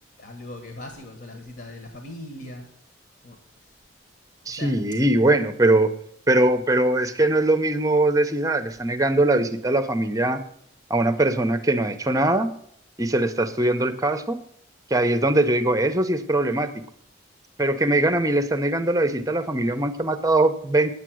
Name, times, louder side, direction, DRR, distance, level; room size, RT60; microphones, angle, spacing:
voice 1, 0.2-2.7 3.2-3.4 4.5-4.8, left 1 dB, 55° left, 4 dB, 1.5 m, -39 dB
voice 2, 4.5-5.9 6.3-10.4 10.9-12.5 13.0-14.4 14.9-16.7 17.6-20.9, right 2 dB, 15° right, 10 dB, 0.7 m, -21 dB
9.8 x 8.5 x 6.2 m, 0.65 s
head